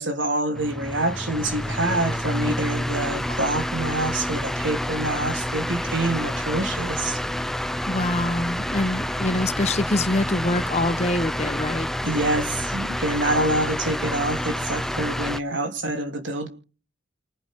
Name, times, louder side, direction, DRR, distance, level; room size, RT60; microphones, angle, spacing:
voice 1, 0.0-7.2 12.0-16.5, right 1 dB, 75° right, 3.4 m, -26 dB
sound 1, 0.5-15.4, equal, ahead, 0.6 m, -28 dB
voice 2, 7.9-11.9, left 2 dB, 35° left, 1.1 m, -25 dB
29.0 x 10.5 x 3.7 m
head